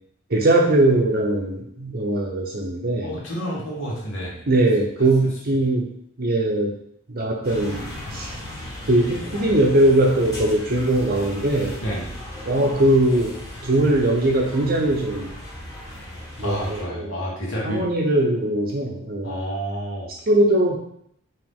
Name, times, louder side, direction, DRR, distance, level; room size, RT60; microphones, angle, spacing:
voice 1, 0.3-3.2 4.5-5.9 6.2-6.7 7.1-8.3 8.9-11.8 12.5-13.3 13.6-15.3 16.4-17.1 17.6-19.4 20.3-20.8, right 1 dB, 45° right, 0 dB, 0.7 m, -20 dB
voice 2, 3.0-4.4 11.8-12.2 16.4-17.9 19.2-20.1, equal, 60° left, -5 dB, 1.6 m, -29 dB
sound 1, 7.4-16.8, left 1 dB, 15° left, 1.9 m, -36 dB
4.9 x 2.8 x 3.6 m, 0.69 s
head